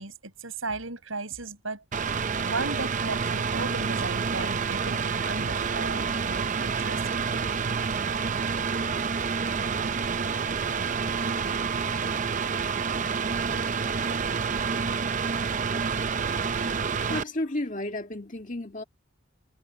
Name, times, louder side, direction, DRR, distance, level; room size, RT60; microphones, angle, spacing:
voice 1, 0.0-1.8 2.4-7.0, right 3 dB, 75° right, 6.3 m, -36 dB
Mechanical fan, 1.9-17.2, right 5 dB, 35° right, 0.6 m, -28 dB
voice 2, 16.7-18.8, left 1 dB, 40° left, 2.1 m, -33 dB
head